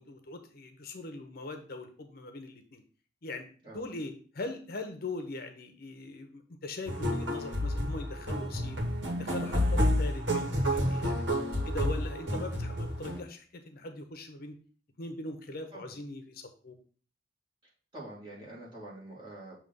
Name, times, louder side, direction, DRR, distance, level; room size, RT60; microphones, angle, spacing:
voice 1, 0.0-2.8 3.2-3.5 3.7-8.8 9.1-11.3 11.6-14.5 15.0-16.8, left 2 dB, 55° left, 6 dB, 0.8 m, -41 dB
sound 1, 6.9-13.2, equal, 85° right, 1.5 m, -30 dB
voice 2, 17.9-19.6, right 1 dB, 25° right, -6 dB, 2.6 m, -46 dB
7.1 x 2.9 x 5.2 m, 0.42 s
head